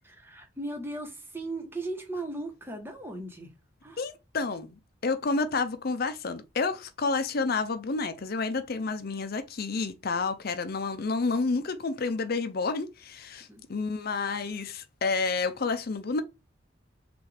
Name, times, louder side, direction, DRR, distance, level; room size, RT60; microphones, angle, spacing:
voice 1, 0.2-3.5 3.8-4.0 13.5-13.6, right 2 dB, 10° right, 1.2 m, -37 dB
voice 2, 4.0-4.7 5.0-16.2, left 4 dB, 50° left, 0.6 m, -30 dB
6.0 x 2.6 x 3.4 m
head